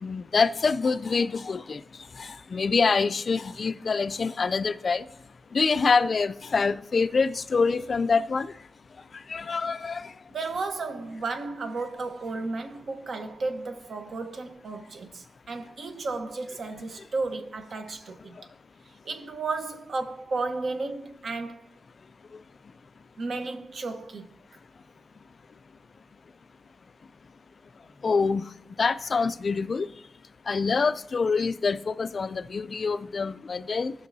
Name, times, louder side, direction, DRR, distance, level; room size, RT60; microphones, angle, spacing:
voice 1, 0.0-1.8 2.2-5.0 5.5-8.5 9.3-10.1 28.0-28.5 28.8-29.9 30.5-33.9, left 4 dB, 45° left, 0.3 m, -25 dB
voice 2, 10.3-18.4 19.0-21.6 23.2-24.3, right 3 dB, 55° right, 1.0 m, -33 dB
17.0 x 6.1 x 2.7 m
wide cardioid pair, 155°, 0 cm